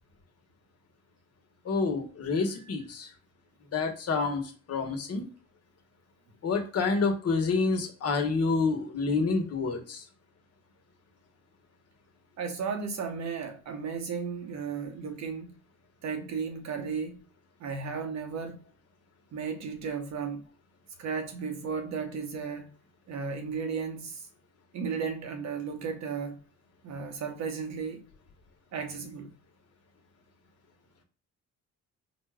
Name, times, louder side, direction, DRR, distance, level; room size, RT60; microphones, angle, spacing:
voice 1, 1.7-3.1 3.7-4.4 4.7-5.2 6.4-10.0, left 4 dB, 55° left, 1.2 m, -28 dB
voice 2, 12.4-15.5 16.0-17.2 17.6-18.6 19.3-20.4 21.0-22.7 23.1-24.2 24.7-26.4 26.8-28.1 28.7-29.3, right 5 dB, 65° right, 1.0 m, -34 dB
4.0 x 2.3 x 3.4 m
cardioid pair, 90°, 30 cm